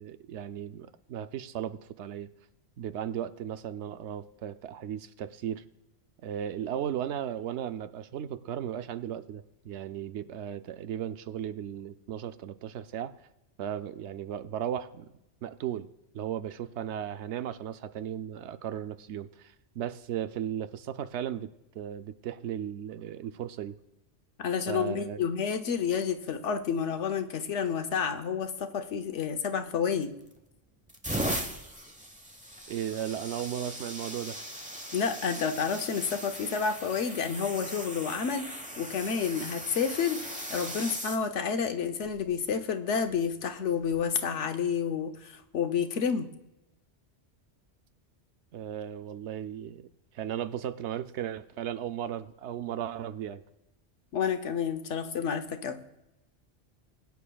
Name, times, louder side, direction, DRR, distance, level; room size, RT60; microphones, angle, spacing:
voice 1, 0.0-2.3 2.8-5.6 6.2-13.1 13.6-15.1 15.4-15.9 16.1-23.8 24.7-25.2 32.7-34.4 48.5-49.9 50.1-53.4, right 10 dB, 75° right, 11 dB, 0.9 m, -36 dB
voice 2, 24.4-30.1 34.9-46.3 54.1-55.8, left 6 dB, 90° left, 8 dB, 1.1 m, -30 dB
sound 1, 30.0-30.4 30.9-41.2 42.1-42.3 43.8-44.0, right 1 dB, 5° right, 0.9 m, -38 dB
21.0 x 9.3 x 2.3 m, 0.93 s
omnidirectional pair, 1.2 m